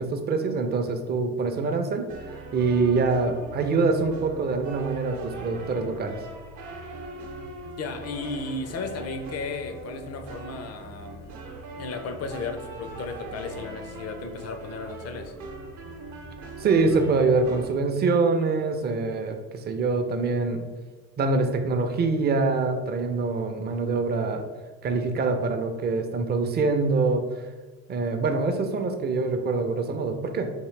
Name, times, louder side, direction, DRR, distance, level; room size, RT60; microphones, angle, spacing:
voice 1, 0.0-6.2 16.6-20.7 21.2-24.4 24.8-27.2 27.9-30.5, right 4 dB, 30° right, 5 dB, 0.5 m, -25 dB
sound 1, 2.1-17.7, right 2 dB, 55° right, 0.8 m, -41 dB
voice 2, 7.8-11.3 11.8-15.3, left 3 dB, 45° left, 7 dB, 0.6 m, -34 dB
3.7 x 2.7 x 3.2 m, 1.3 s
supercardioid pair, 85°, 34 cm